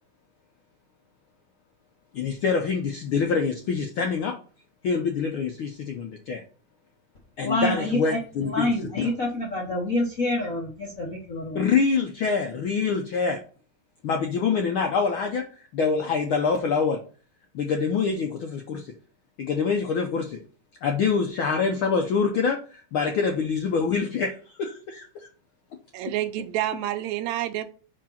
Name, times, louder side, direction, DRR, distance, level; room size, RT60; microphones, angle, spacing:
voice 1, 2.1-4.4 4.8-6.4 7.4-8.7 9.0-9.1 11.5-13.4 14.0-17.0 17.5-18.9 19.4-20.4 20.8-25.3, left 5 dB, 75° left, 1.2 m, -25 dB
voice 2, 7.4-8.2 8.4-11.7, left 1 dB, 55° left, 0.9 m, -27 dB
voice 3, 25.9-27.7, right 13 dB, 80° right, 1.8 m, -28 dB
5.0 x 5.0 x 5.7 m
omnidirectional pair, 3.3 m